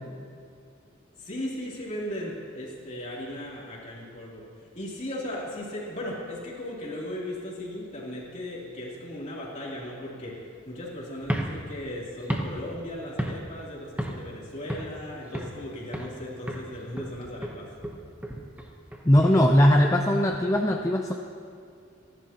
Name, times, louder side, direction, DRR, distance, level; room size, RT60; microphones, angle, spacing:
voice 1, 1.2-4.4 4.7-17.7, left 1 dB, 35° left, -5 dB, 3.2 m, -37 dB
sound 1, 11.2-13.7 14.0-14.3 14.7-15.6 15.9-16.2 16.5-19.6, right 1 dB, 10° right, 1.0 m, -34 dB
voice 2, 19.0-21.1, equal, 15° left, 2 dB, 0.5 m, -20 dB
28.0 x 11.5 x 3.0 m, 2.3 s
head